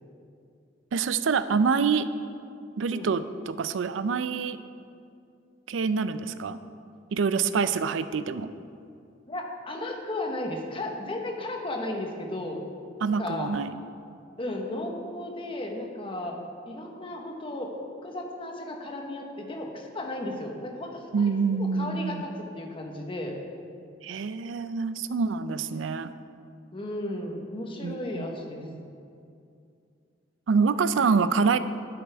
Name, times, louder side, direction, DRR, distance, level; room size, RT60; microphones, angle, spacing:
voice 1, 0.9-2.1 2.8-4.6 5.7-6.6 7.1-8.5 13.0-13.8 21.1-22.3 24.0-26.1 27.8-28.4 28.6-28.9 30.5-31.6, right 5 dB, 90° right, 13 dB, 0.4 m, -26 dB
voice 2, 9.3-12.6 13.2-13.5 14.4-16.4 16.7-17.7 18.0-23.4 26.7-28.6, left 1 dB, 30° left, 1 dB, 1.2 m, -34 dB
12.0 x 9.4 x 3.5 m, 2.5 s
head